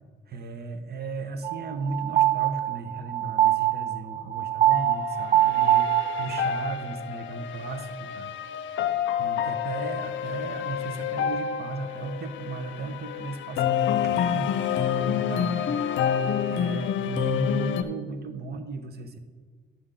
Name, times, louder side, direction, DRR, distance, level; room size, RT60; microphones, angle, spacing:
voice 1, 0.3-8.3 9.2-15.6 16.4-19.2, right 3 dB, 55° right, 8 dB, 0.9 m, -36 dB
sound 1, 1.4-6.6, right 14 dB, 35° right, 0.4 m, -23 dB
sound 2, 4.7-17.8, left 9 dB, 75° left, 0.6 m, -28 dB
10.5 x 3.8 x 6.8 m, 1.5 s
cardioid pair, 90°, 20 cm